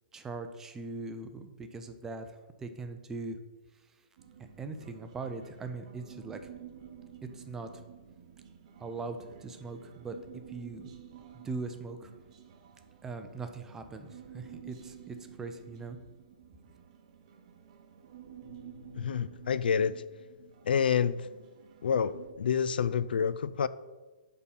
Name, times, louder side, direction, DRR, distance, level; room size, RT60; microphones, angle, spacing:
voice 1, 0.1-3.4 4.6-6.4 7.3-7.8 8.8-10.2 10.5-10.9 11.3-12.1 13.0-16.0, right 3 dB, 10° right, 7 dB, 0.4 m, -40 dB
Human voice, 4.2-22.3, right 9 dB, 40° right, 0.8 m, -52 dB
voice 2, 18.9-20.0 20.7-21.3 21.8-23.7, left 7 dB, 85° left, 16 dB, 0.4 m, -28 dB
8.1 x 3.7 x 5.8 m, 1.2 s
hypercardioid pair, 160°, 5 cm